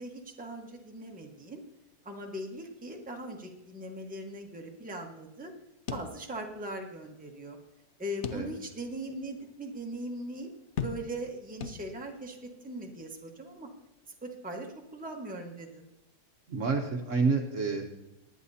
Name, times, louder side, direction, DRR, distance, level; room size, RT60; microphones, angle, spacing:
voice 1, 0.0-1.6 2.0-5.5 5.9-7.6 8.0-10.5 10.8-12.4 12.6-13.7 14.2-15.9, right 1 dB, 5° right, 1 dB, 1.1 m, -40 dB
sound 1, 5.9-6.7 7.1-7.2 8.2-8.9 9.4-9.5 10.8-11.3 11.6-12.3, left 6 dB, 65° left, 0.7 m, -38 dB
voice 2, 16.5-17.8, right 4 dB, 55° right, 3 dB, 1.2 m, -28 dB
19.5 x 9.9 x 2.8 m, 0.92 s
omnidirectional pair, 1.7 m